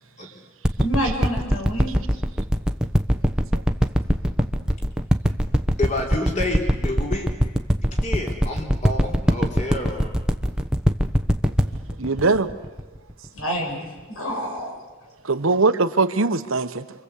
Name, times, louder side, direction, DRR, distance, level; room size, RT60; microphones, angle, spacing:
sound 1, 0.6-13.4 14.0-14.1, equal, 5° right, 1.1 m, -21 dB
voice 1, 0.8-2.0 13.3-14.8, equal, 75° left, 7.8 m, -28 dB
voice 2, 5.8-7.3 7.8-10.1, left 2 dB, 35° left, 3.8 m, -29 dB
voice 3, 12.0-12.5 15.3-16.8, right 3 dB, 70° right, 1.1 m, -20 dB
28.0 x 25.0 x 8.4 m
head